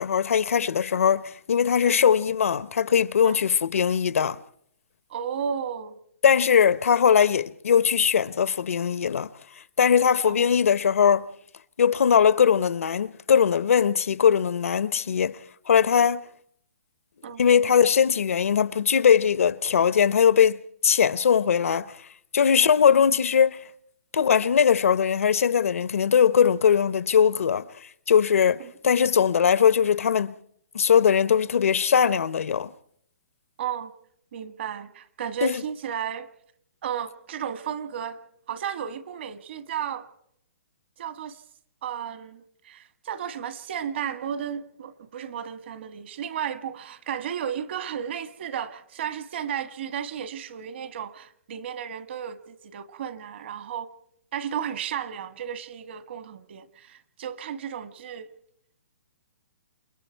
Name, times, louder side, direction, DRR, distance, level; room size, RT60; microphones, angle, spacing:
voice 1, 0.0-4.4 6.2-9.3 9.8-11.3 11.8-15.4 15.7-16.3 17.4-21.9 22.3-23.6 24.1-27.7 28.1-30.3 30.7-32.7 35.4-35.6, left 7 dB, 75° left, 0.9 m, -20 dB
voice 2, 5.1-6.0 10.2-10.6 17.2-17.4 22.6-22.8 28.6-29.1 33.6-33.9 34.3-36.3 36.8-38.2 38.5-40.1 41.0-41.4 41.8-53.9 54.3-58.3, right 8 dB, 50° right, 1.6 m, -34 dB
28.5 x 21.5 x 4.6 m
hypercardioid pair, 155°, 8 cm